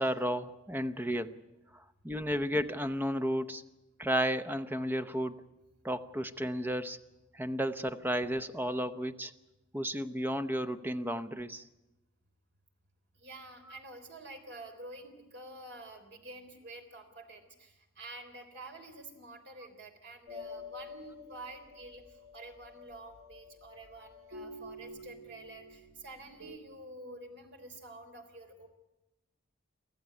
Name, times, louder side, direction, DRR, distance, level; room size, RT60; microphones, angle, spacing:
voice 1, 0.0-1.4 1.7-3.6 4.0-5.3 5.8-7.0 7.3-9.3 9.7-11.6 13.7-13.8, equal, 10° right, 10 dB, 0.8 m, -33 dB
voice 2, 13.2-28.7, right 2 dB, 55° right, 5 dB, 3.6 m, -49 dB
sound 1, 20.3-26.6, left 3 dB, 75° right, 2.6 m, -49 dB
24.5 x 15.0 x 9.7 m, 1.0 s
head